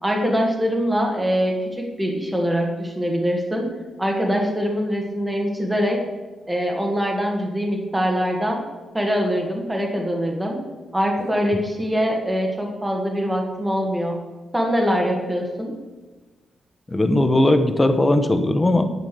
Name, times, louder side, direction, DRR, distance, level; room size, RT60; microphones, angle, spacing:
voice 1, 0.0-3.7 4.0-6.0 6.5-8.6 8.9-10.6 10.9-14.2 14.5-15.7, equal, 5° right, 0 dB, 1.7 m, -23 dB
voice 2, 16.9-18.8, left 1 dB, 15° left, 7 dB, 0.9 m, -18 dB
11.0 x 7.0 x 6.7 m, 1.2 s
wide cardioid pair, 180°, 0 cm